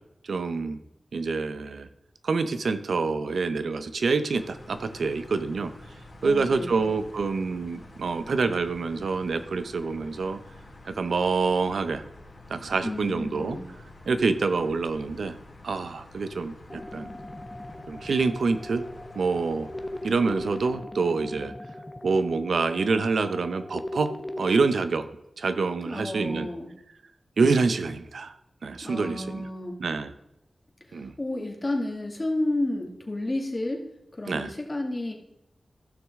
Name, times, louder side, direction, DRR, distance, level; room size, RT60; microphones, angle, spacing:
voice 1, 0.3-0.8 1.1-1.9 2.2-5.7 6.2-10.4 10.8-12.0 12.5-13.6 14.1-15.4 15.6-17.1 17.9-18.9 19.2-19.7 20.0-21.5 22.0-24.1 24.4-25.1 25.4-26.5 27.4-28.3 28.6-29.5 29.8-30.1 30.9-31.1 34.3-34.5, right 4 dB, 80° right, 11 dB, 0.7 m, -26 dB
sound 1, 4.3-20.8, left 2 dB, 60° left, 2.7 m, -48 dB
voice 2, 6.2-7.0 12.8-13.7 25.9-26.7 28.8-29.8 30.9-33.8 34.1-35.1, left 1 dB, 35° left, 1 dB, 2.2 m, -31 dB
sound 2, 16.7-24.7, left 1 dB, 20° left, 0.8 m, -39 dB
15.0 x 6.3 x 3.6 m, 0.86 s
cardioid pair, 50°, 0 cm